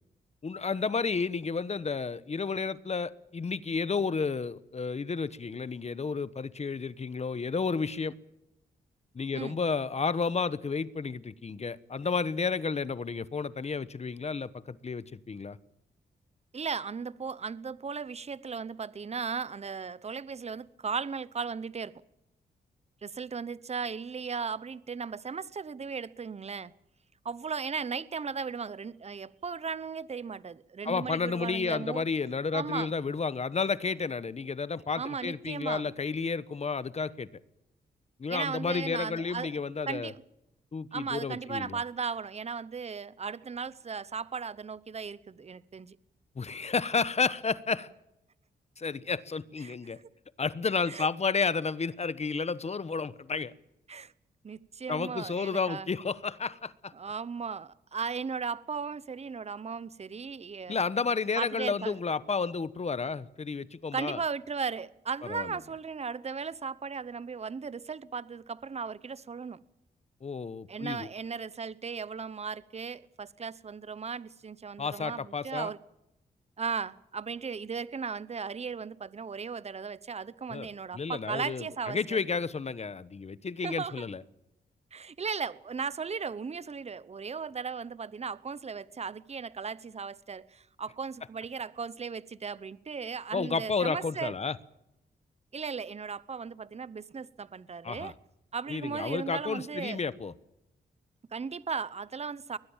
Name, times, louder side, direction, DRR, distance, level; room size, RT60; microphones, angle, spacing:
voice 1, 0.4-8.2 9.1-15.6 30.8-37.3 38.2-40.1 40.7-41.8 46.4-47.9 48.8-50.0 50.4-53.5 54.9-56.9 60.7-64.2 65.2-65.5 70.2-71.1 74.8-75.7 80.5-84.2 93.3-94.6 97.8-98.1 98.7-100.3, left 4 dB, 40° left, 1.1 m, -31 dB
voice 2, 16.5-21.9 23.0-26.7 27.2-32.0 32.5-32.9 35.0-35.9 38.3-39.5 39.9-40.2 40.9-46.0 49.6-49.7 50.9-51.1 53.9-54.1 54.4-55.9 56.9-60.8 61.4-61.9 63.9-69.6 70.7-75.8 76.6-82.2 83.6-84.1 84.9-94.3 95.5-98.1 98.5-100.0 101.3-102.6, right 5 dB, 40° right, 0.9 m, -36 dB
21.5 x 20.5 x 7.3 m
cardioid pair, 80°, 17 cm